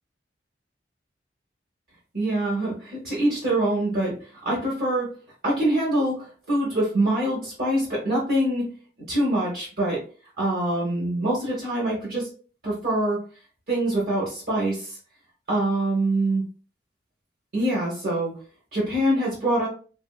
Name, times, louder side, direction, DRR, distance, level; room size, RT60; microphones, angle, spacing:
voice 1, 2.1-4.1 4.4-5.1 5.4-8.6 9.1-10.0 10.4-12.3 12.6-13.2 13.7-15.0 15.5-16.4 17.5-18.4 18.7-19.7, right 1 dB, 55° right, -5 dB, 1.0 m, -24 dB
3.1 x 2.6 x 2.3 m, 0.39 s
head